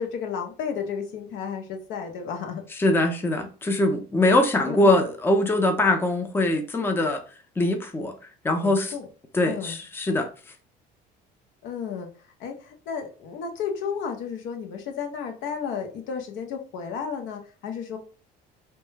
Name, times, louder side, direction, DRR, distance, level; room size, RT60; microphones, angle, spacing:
voice 1, 0.0-2.6 4.6-5.0 8.6-9.0 9.4-9.8 11.6-12.1 12.4-18.0, left 6 dB, 65° left, 0.7 m, -33 dB
voice 2, 2.8-7.2 7.6-8.1 8.4-8.9 9.3-10.3, left 2 dB, 10° left, 0.5 m, -22 dB
2.1 x 2.1 x 3.2 m
supercardioid pair, 75°, 21 cm